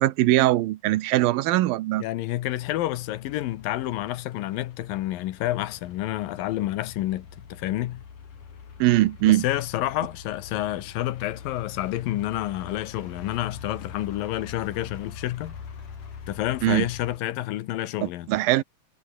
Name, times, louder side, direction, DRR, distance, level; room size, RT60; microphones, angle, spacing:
voice 1, 0.0-2.0 8.8-9.4 16.6-16.8 18.0-18.6, right 16 dB, 85° right, 2.7 m, -21 dB
voice 2, 2.0-8.0 9.3-15.6 16.3-18.3, left 15 dB, 80° left, 2.7 m, -29 dB
sound 1, 2.4-17.2, left 6 dB, 60° left, 5.1 m, -44 dB
omnidirectional pair, 4.1 m